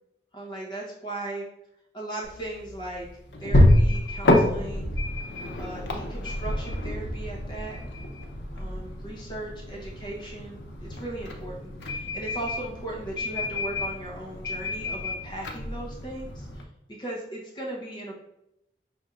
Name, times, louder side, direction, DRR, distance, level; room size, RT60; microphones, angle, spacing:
voice 1, 0.3-1.4 1.9-3.1 3.4-4.9 5.6-7.8 8.5-18.1, right 2 dB, 25° left, -3 dB, 0.9 m, -37 dB
sound 1, 2.2-16.6, left 1 dB, 90° left, 0.7 m, -27 dB
5.5 x 3.4 x 2.5 m, 0.86 s
head